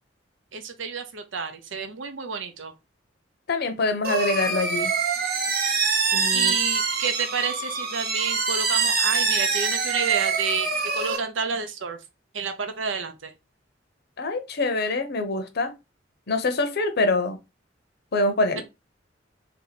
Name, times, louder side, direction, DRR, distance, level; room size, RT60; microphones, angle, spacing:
voice 1, 0.5-2.7 6.3-12.0 12.3-13.3 18.6-18.7, right 5 dB, 85° right, 0.7 m, -30 dB
voice 2, 3.5-4.9 6.1-6.5 14.2-15.7 16.3-17.4 18.1-18.6, left 2 dB, 60° left, 0.7 m, -25 dB
sound 1, 4.0-11.2, right 5 dB, 55° right, 1.0 m, -25 dB
3.4 x 2.8 x 4.1 m
head